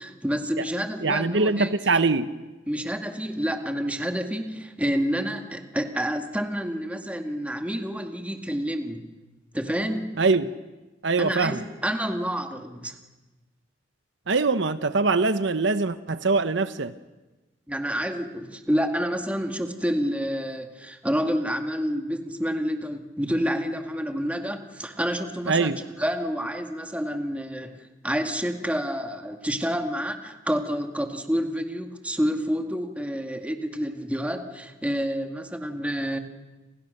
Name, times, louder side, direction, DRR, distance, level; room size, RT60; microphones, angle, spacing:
voice 1, 0.0-1.7 2.7-9.1 9.5-10.1 11.2-13.0 17.7-27.8 28.0-36.2, equal, 5° right, 5 dB, 2.1 m, -28 dB
voice 2, 1.0-2.3 10.2-10.5 11.0-11.6 14.3-16.9 25.5-25.8, right 3 dB, 70° right, 12 dB, 0.9 m, -23 dB
30.0 x 27.5 x 6.7 m, 1.1 s
head